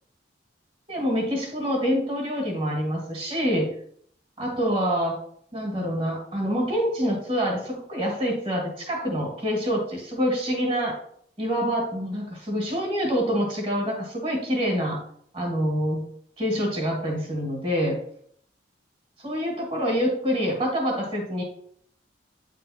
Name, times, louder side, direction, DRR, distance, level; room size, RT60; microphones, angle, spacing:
voice 1, 0.9-3.7 4.4-5.2 5.5-11.0 11.4-15.0 15.3-16.1 16.4-18.0 19.2-21.4, equal, 30° right, 0 dB, 1.9 m, -26 dB
8.8 x 3.7 x 4.3 m, 0.64 s
head